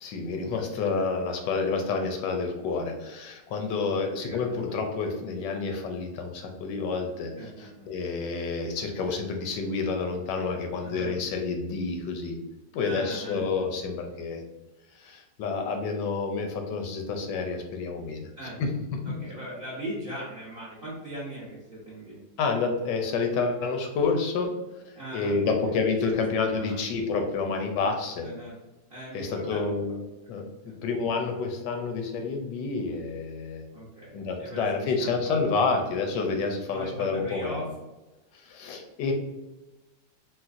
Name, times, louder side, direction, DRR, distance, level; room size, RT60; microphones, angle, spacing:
voice 1, 0.0-7.3 7.9-12.4 12.7-14.4 14.9-18.3 18.6-18.7 22.4-24.5 25.1-28.3 29.1-30.0 30.3-30.4 30.8-33.6 34.1-37.6 38.4-39.1, left 4 dB, 85° left, 4 dB, 1.2 m, -29 dB
voice 2, 4.1-4.8 7.3-7.9 10.8-11.1 12.8-13.6 18.4-18.6 19.0-22.2 24.9-25.5 26.1-26.8 28.2-28.6 28.9-29.7 30.2-30.8 33.7-35.8 36.7-37.7, right 1 dB, 55° right, -7 dB, 0.6 m, -40 dB
4.0 x 2.1 x 2.4 m, 1.1 s
omnidirectional pair, 1.9 m